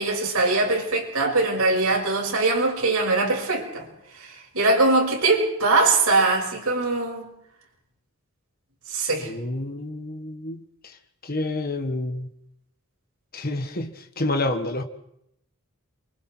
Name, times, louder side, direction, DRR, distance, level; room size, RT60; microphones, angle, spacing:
voice 1, 0.0-3.9 4.1-7.3 8.9-9.3, right 3 dB, 90° right, 0 dB, 6.0 m, -22 dB
voice 2, 9.2-11.0 11.2-12.3 13.3-14.8, left 2 dB, 45° left, 6 dB, 1.7 m, -29 dB
28.5 x 24.5 x 4.6 m, 0.78 s
head